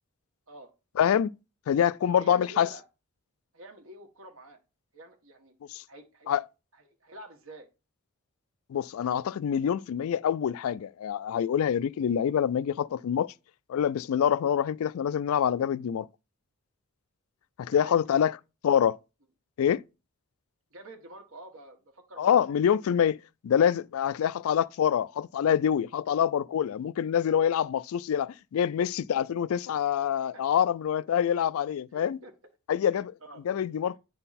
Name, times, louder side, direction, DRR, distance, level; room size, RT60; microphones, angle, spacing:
voice 1, 1.0-1.3 1.7-2.7 5.7-5.8 6.3-6.4 8.7-13.3 13.7-16.1 17.6-18.4 18.6-19.0 19.6-19.8 22.2-32.2 32.7-33.1 33.4-34.0, left 8 dB, 85° left, 0.3 m, -26 dB
voice 2, 2.2-2.8 3.5-4.6 4.9-5.5 5.9-6.4 6.7-7.7 17.7-18.3 20.7-22.4 30.1-30.6 31.9-32.3 32.9-33.4, right 2 dB, 75° right, 1.5 m, -48 dB
9.8 x 3.9 x 4.1 m
head